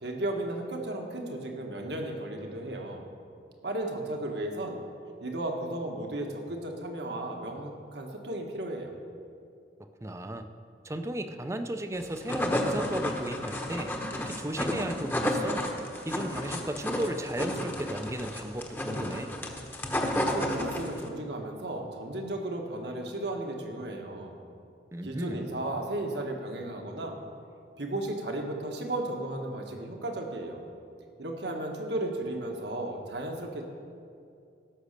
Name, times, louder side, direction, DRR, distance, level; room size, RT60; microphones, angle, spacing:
voice 1, 0.0-3.1 3.6-4.8 5.2-8.9 20.2-24.4 25.0-27.2 27.8-30.6 31.2-33.6, right 1 dB, 70° right, 2 dB, 1.5 m, -34 dB
voice 2, 10.0-10.5 10.8-13.9 14.3-15.6 16.0-19.3 24.9-25.5, right 1 dB, 15° right, 8 dB, 0.5 m, -35 dB
sound 1, 12.0-21.1, left 1 dB, 10° left, 1.0 m, -31 dB
16.5 x 6.4 x 6.7 m, 2.5 s
head